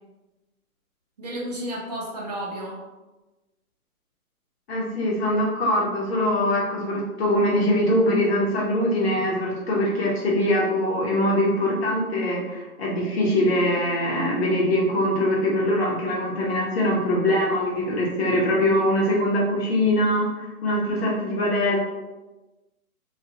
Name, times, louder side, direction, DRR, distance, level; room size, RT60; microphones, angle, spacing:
voice 1, 1.2-2.8, right 1 dB, 30° right, -4 dB, 0.5 m, -32 dB
voice 2, 4.7-20.3 20.6-21.8, left 1 dB, 45° left, -4 dB, 0.9 m, -22 dB
2.5 x 2.2 x 2.8 m, 1.1 s
hypercardioid pair, 150°, 44 cm